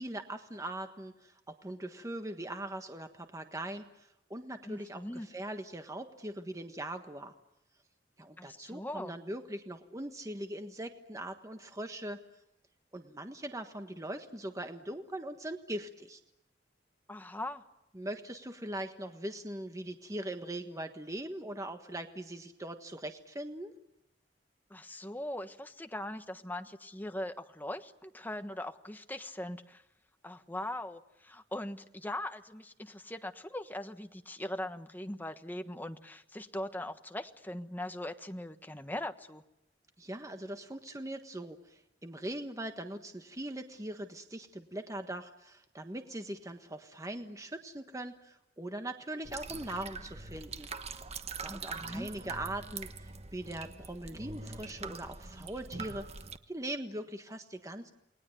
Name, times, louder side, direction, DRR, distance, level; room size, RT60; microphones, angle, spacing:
voice 1, 0.0-7.3 8.2-12.2 12.9-16.2 17.9-23.7 40.0-50.7 51.4-56.0 56.5-57.9, right 1 dB, 20° right, 6 dB, 1.4 m, -41 dB
voice 2, 4.6-5.3 8.4-9.1 17.1-17.6 24.7-29.8 30.2-39.4 51.5-52.1, left 1 dB, 10° left, 7 dB, 1.4 m, -40 dB
sound 1, 49.2-56.4, right 4 dB, 35° right, 1.2 m, -43 dB
29.5 x 20.5 x 9.2 m, 0.89 s
head